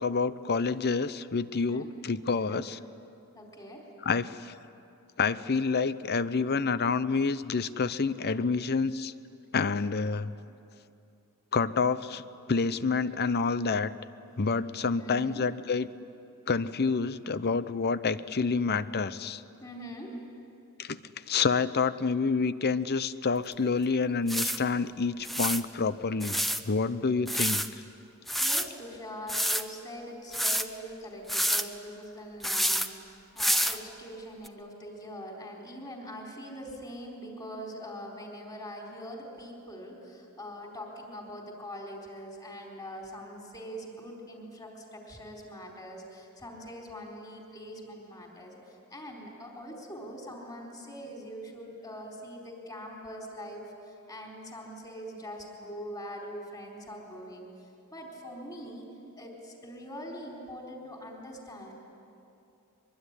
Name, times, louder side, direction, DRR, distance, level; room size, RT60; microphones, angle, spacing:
voice 1, 0.0-2.8 4.0-4.5 5.2-9.1 9.5-10.3 11.5-12.2 12.5-13.9 14.4-15.9 16.5-19.4 20.8-21.0 21.3-27.6, left 4 dB, 45° left, 15 dB, 0.7 m, -28 dB
voice 2, 1.5-1.9 2.4-2.6 3.3-3.8 15.0-15.4 19.6-20.1 28.4-57.5 57.9-58.9 59.2-61.7, equal, 20° left, -1 dB, 4.2 m, -43 dB
sound 1, 23.5-23.6 24.3-24.6 25.2-25.6 26.2-26.6 27.3-27.7 28.3-28.7 29.3-29.6 30.3-30.7 31.3-31.6 32.4-32.9 33.4-33.8 34.5-34.6, equal, ahead, 0.8 m, -27 dB
23.5 x 23.5 x 9.9 m, 2.7 s
head